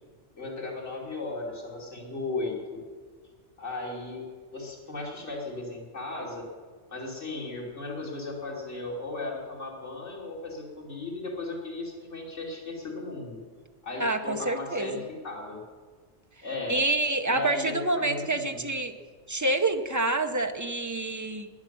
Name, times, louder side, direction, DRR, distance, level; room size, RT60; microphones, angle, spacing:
voice 1, 0.3-2.8 3.6-4.2 4.5-6.4 6.9-13.4 13.8-15.6 16.4-16.7 17.3-18.6, left 2 dB, 80° left, -3 dB, 3.0 m, -36 dB
voice 2, 14.0-14.9 16.7-18.9 19.3-21.5, right 2 dB, 15° right, 6 dB, 0.8 m, -27 dB
12.0 x 10.5 x 9.2 m, 1.5 s
omnidirectional pair, 1.2 m